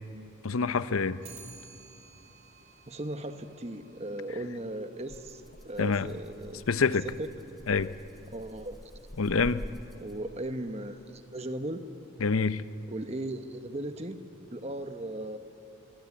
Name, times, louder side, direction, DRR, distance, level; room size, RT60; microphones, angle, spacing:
voice 1, 0.4-1.2 5.8-6.1 6.7-7.0 7.7-7.9 9.2-9.7 12.2-12.6, left 4 dB, 80° left, 14 dB, 0.7 m, -26 dB
Clock, 1.2-10.6, right 4 dB, 85° right, 3.0 m, -57 dB
voice 2, 2.9-6.7 7.2-7.3 8.3-8.8 10.0-11.9 12.9-14.2 14.5-15.4, right 1 dB, 30° right, 8 dB, 1.1 m, -37 dB
Rattle (instrument), 5.1-10.4, equal, ahead, 0.7 m, -46 dB
24.5 x 21.0 x 8.6 m, 2.9 s
head